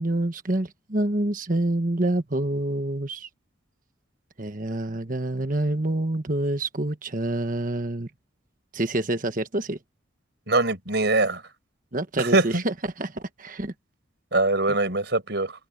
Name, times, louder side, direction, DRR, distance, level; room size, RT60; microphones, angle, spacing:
voice 1, 0.0-3.3 4.4-8.1 8.7-9.8 11.9-13.7, right 1 dB, 45° right, 1.4 m, -27 dB
voice 2, 10.5-11.4 12.2-12.6 14.3-15.5, right 2 dB, 60° right, 5.5 m, -22 dB
open air
head